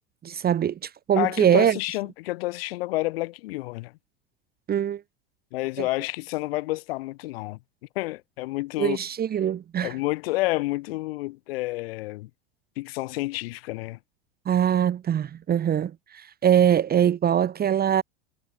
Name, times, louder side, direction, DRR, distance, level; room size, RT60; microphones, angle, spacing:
voice 1, 0.2-1.8 4.7-5.0 5.8-5.9 8.8-9.9 14.4-18.0, right 9 dB, 30° right, 1.6 m, -22 dB
voice 2, 1.2-3.9 5.5-7.6 7.9-9.0 9.8-12.3 12.8-14.0, left 20 dB, 70° left, 2.7 m, -29 dB
hypercardioid pair, 95°, 31 cm